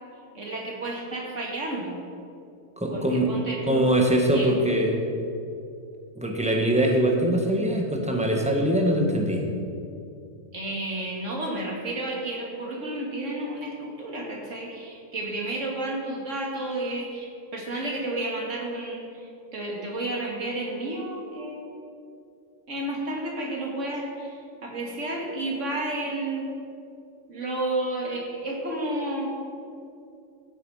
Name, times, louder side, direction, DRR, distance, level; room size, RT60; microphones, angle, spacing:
voice 1, 0.3-2.0 2.9-3.9 4.3-4.6 10.5-19.0 19.5-21.7 22.7-24.3 24.6-26.5 27.3-29.3, right 1 dB, 65° right, -1 dB, 2.4 m, -31 dB
voice 2, 2.8-3.3 3.7-5.0 6.2-9.4, right 1 dB, 5° right, 1 dB, 1.5 m, -22 dB
14.5 x 8.3 x 5.6 m, 2.5 s
omnidirectional pair, 1.4 m